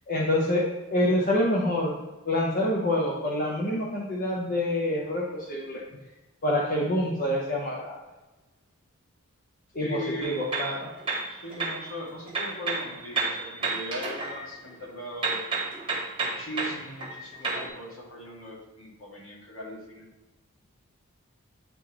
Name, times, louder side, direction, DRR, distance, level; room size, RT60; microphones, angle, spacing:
voice 1, 0.1-1.9 2.2-5.8 6.4-8.0 9.7-10.9, left 1 dB, 40° left, -4 dB, 0.8 m, -26 dB
voice 2, 9.8-10.3 11.3-15.4 16.2-20.1, equal, 65° left, -3 dB, 1.8 m, -39 dB
sound 1, 10.2-11.9 12.3-14.9 15.2-17.7, right 3 dB, 25° right, 1.1 m, -31 dB
8.8 x 3.8 x 3.0 m, 1.1 s
head